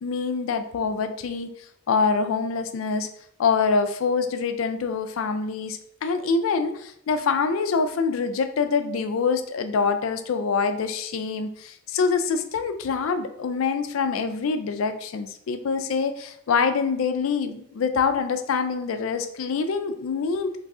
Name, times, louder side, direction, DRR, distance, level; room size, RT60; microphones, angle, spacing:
voice 1, 0.0-1.5 1.9-3.1 3.4-20.5, left 5 dB, 85° left, 9 dB, 0.4 m, -25 dB
3.1 x 2.3 x 3.6 m, 0.71 s
head